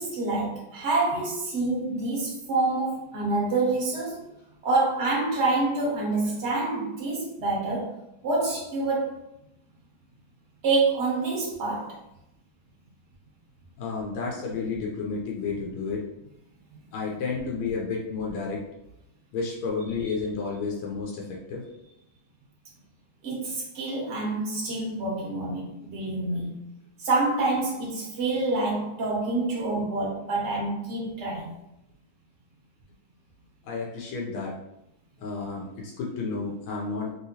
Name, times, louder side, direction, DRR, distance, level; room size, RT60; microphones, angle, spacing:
voice 1, 0.0-4.3 4.6-8.0 8.2-9.2 10.6-12.0 23.2-26.6 27.0-31.5, right 3 dB, 75° right, -3 dB, 0.6 m, -27 dB
voice 2, 13.8-16.1 16.9-18.6 19.3-21.6 33.6-34.6 35.2-37.1, left 4 dB, 85° left, -2 dB, 1.5 m, -31 dB
3.3 x 2.8 x 2.7 m, 0.84 s
omnidirectional pair, 2.3 m